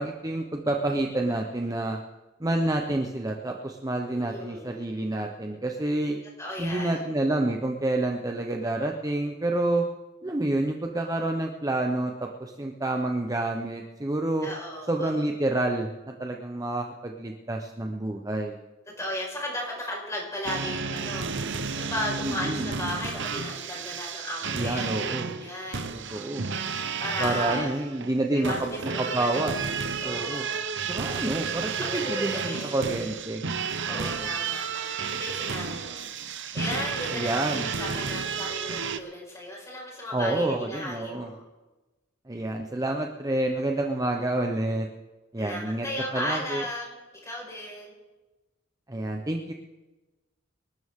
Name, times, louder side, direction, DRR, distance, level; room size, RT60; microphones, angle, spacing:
voice 1, 0.0-2.0 2.4-6.2 6.6-9.8 10.2-14.5 14.9-18.6 22.2-22.7 24.5-25.3 25.9-26.5 27.2-28.7 29.0-29.5 30.0-30.5 30.9-33.4 33.9-34.3 37.1-37.7 40.1-41.3 42.3-44.9 45.3-45.9 46.1-46.6 48.9-49.5, right 2 dB, 15° right, 2 dB, 0.8 m, -28 dB
voice 2, 4.1-4.8 6.4-7.0 14.4-15.2 19.0-25.9 27.0-27.8 28.3-29.7 30.0-30.6 31.8-32.8 33.8-41.4 45.4-47.0 47.2-48.0, left 1 dB, 15° left, -3 dB, 4.9 m, -35 dB
sound 1, 20.4-39.0, right 5 dB, 60° right, 0.9 m, -32 dB
26.0 x 13.0 x 3.7 m, 1.1 s
head